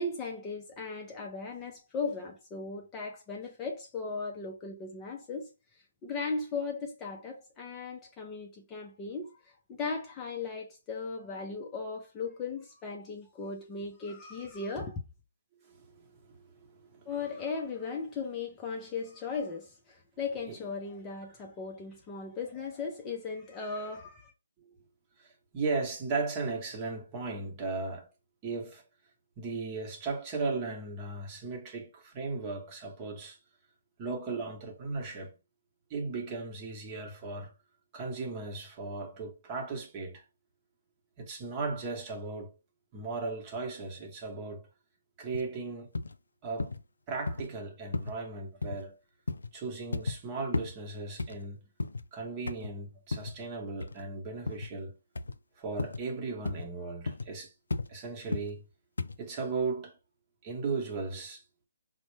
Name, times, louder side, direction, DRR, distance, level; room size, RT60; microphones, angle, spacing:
voice 1, 0.0-5.5 6.0-15.0 17.1-24.3, left 4 dB, 20° left, 0.5 m, -37 dB
voice 2, 15.7-17.1 20.5-20.6 24.6-24.7 25.2-28.1 28.4-28.8 29.4-33.4 34.0-35.3 35.9-37.5 37.9-40.2 41.2-42.6 42.9-44.7 45.2-45.9 46.4-46.7 47.1-49.0 49.5-51.7 52.1-54.9 55.6-57.5 57.9-58.6 59.2-60.0 60.4-61.4, right 3 dB, 25° right, 0.9 m, -36 dB
sound 1, 45.3-45.5 45.9-46.2 46.6-46.8 47.3-47.5 47.9-48.2 48.6-48.8 49.3-49.5 49.9-50.2 50.5-50.8 51.2-52.1 52.5-52.7 53.1-53.4 53.8-54.0 54.5-54.7 55.2-55.4 55.8-56.0 56.5-56.7 57.1-57.3 57.7-57.9 58.3-58.5 59.0-59.2, left 3 dB, 90° left, 0.3 m, -34 dB
4.1 x 2.1 x 3.2 m
hypercardioid pair, 155°, 0 cm